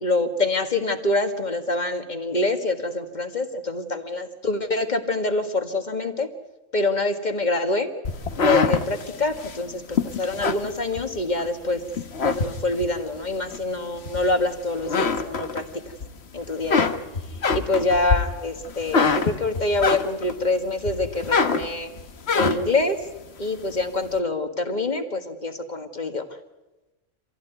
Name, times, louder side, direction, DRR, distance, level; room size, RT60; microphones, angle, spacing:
voice 1, 0.0-6.3 6.7-7.9 8.4-11.8 12.2-15.6 16.3-16.9 17.5-21.9 22.3-23.0 23.4-26.2, left 2 dB, 35° left, 7 dB, 1.9 m, -25 dB
sound 1, 8.0-11.5 11.9-13.0 13.5-14.5 14.8-16.1 16.4-20.4 20.8-22.8, left 4 dB, 60° left, 1.4 m, -24 dB
26.0 x 16.0 x 9.4 m, 1.0 s
omnidirectional pair, 1.3 m